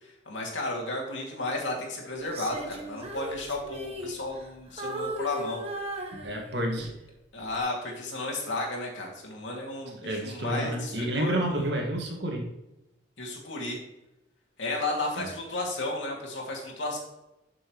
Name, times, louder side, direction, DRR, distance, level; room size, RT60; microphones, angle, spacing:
voice 1, 0.0-5.6 7.3-11.7 13.2-13.8 14.6-17.0, left 2 dB, 90° left, -1 dB, 2.4 m, -33 dB
Female singing, 2.2-4.5 4.8-6.8 7.4-7.6, right 1 dB, 35° right, 1.2 m, -37 dB
voice 2, 6.1-6.9 10.0-12.4 15.2-15.3, right 1 dB, 70° right, 1 dB, 1.8 m, -30 dB
12.0 x 6.2 x 3.1 m, 0.93 s
head